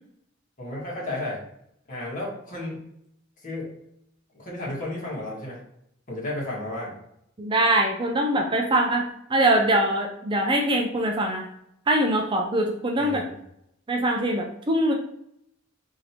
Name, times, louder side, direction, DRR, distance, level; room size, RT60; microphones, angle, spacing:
voice 1, 0.6-1.4 1.9-2.8 3.4-3.7 4.3-5.6 6.1-6.9 13.0-13.2, left 1 dB, 40° left, -4 dB, 1.6 m, -32 dB
voice 2, 7.4-11.5 11.9-13.2 13.9-14.9, right 1 dB, 25° right, 2 dB, 0.4 m, -23 dB
5.1 x 2.8 x 2.8 m, 0.75 s
head